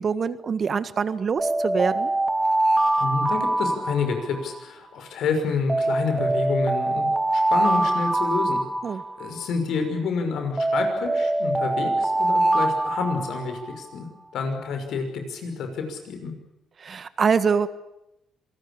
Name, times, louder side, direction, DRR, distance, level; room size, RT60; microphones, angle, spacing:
voice 1, 0.0-2.1 8.8-9.0 16.8-17.7, right 6 dB, 45° right, 13 dB, 1.6 m, -24 dB
sound 1, 1.4-4.6 5.7-9.5 10.6-13.8, right 2 dB, 15° right, 2.8 m, -24 dB
voice 2, 3.0-7.1 7.3-8.6 8.9-14.1 14.3-16.3, left 4 dB, 75° left, 6 dB, 6.1 m, -28 dB
26.5 x 19.5 x 8.9 m, 0.85 s
cardioid pair, 80°, 0 cm